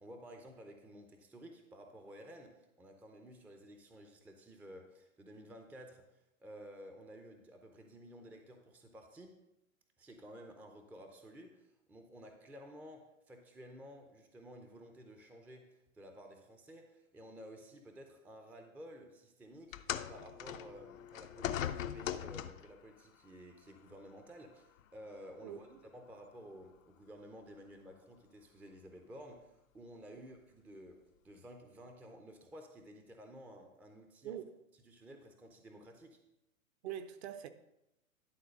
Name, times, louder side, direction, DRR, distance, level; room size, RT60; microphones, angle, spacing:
voice 1, 0.0-9.4 10.0-19.8 20.1-25.7 25.9-34.4 34.9-36.2, equal, 5° right, 0.5 m, -53 dB
sound 1, 19.7-22.8 23.8-23.9 24.8-24.9, left 10 dB, 70° left, 0.7 m, -40 dB
voice 2, 25.4-25.8 34.2-34.5 36.8-37.5, right 10 dB, 50° right, 0.9 m, -43 dB
11.5 x 3.9 x 6.4 m
hypercardioid pair, 115°, 41 cm